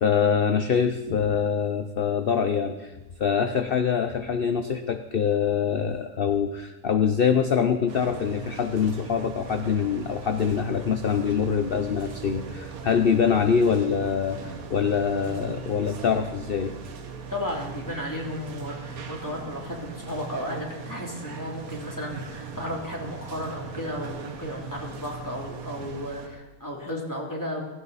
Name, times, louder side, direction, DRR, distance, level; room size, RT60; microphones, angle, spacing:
voice 1, 0.0-16.7, left 7 dB, 50° left, 8 dB, 0.8 m, -24 dB
sound 1, 7.9-26.3, right 5 dB, 70° right, 1.5 m, -40 dB
voice 2, 17.3-27.7, left 1 dB, 10° left, -2 dB, 3.0 m, -34 dB
16.5 x 16.0 x 4.1 m, 1.1 s
omnidirectional pair, 1.6 m